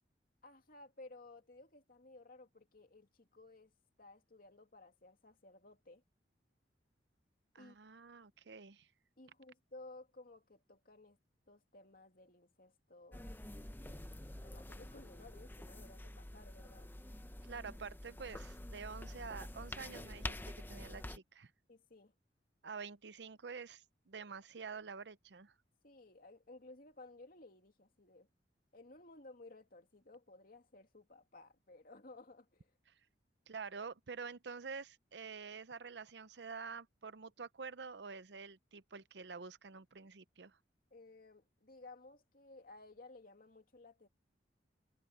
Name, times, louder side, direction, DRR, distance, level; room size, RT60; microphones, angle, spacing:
voice 1, 0.4-3.7 4.0-6.0 7.5-7.8 9.2-11.2 11.5-14.0 14.4-16.9 21.7-22.1 25.8-28.3 28.7-32.7 40.9-44.1, left 2 dB, 55° left, 2.7 m, -57 dB
voice 2, 7.5-8.9 17.5-21.5 22.6-25.5 33.5-40.6, right 5 dB, 70° right, 0.7 m, -48 dB
sound 1, 13.1-21.2, left 1 dB, 10° left, 0.7 m, -47 dB
head